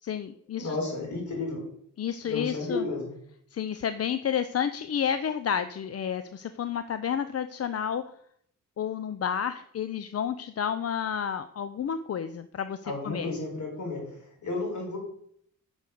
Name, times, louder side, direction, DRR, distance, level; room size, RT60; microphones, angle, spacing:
voice 1, 0.0-0.7 2.0-2.8 3.5-8.1 8.8-12.8 13.0-13.3, left 8 dB, 50° left, 11 dB, 0.6 m, -30 dB
voice 2, 0.6-1.7 2.2-3.2 12.8-15.0, left 2 dB, 65° left, 0 dB, 4.6 m, -33 dB
9.2 x 6.3 x 6.7 m, 0.67 s
wide cardioid pair, 125°, 31 cm